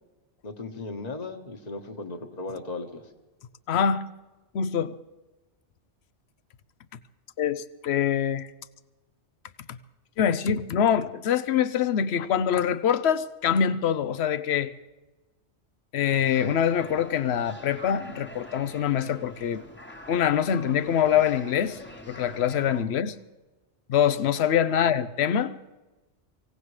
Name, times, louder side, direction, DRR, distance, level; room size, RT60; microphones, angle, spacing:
voice 1, 0.4-3.0 22.9-23.0, left 3 dB, 35° left, 1.4 m, -36 dB
voice 2, 3.7-4.1 4.5-4.9 7.4-8.5 9.7-9.8 10.2-14.7 15.9-19.6 20.1-21.8 22.1-23.1 23.9-25.6, left 8 dB, 65° left, 0.9 m, -24 dB
sound 1, 16.1-22.8, left 1 dB, 10° left, 1.0 m, -45 dB
24.0 x 17.0 x 3.3 m
omnidirectional pair, 1.2 m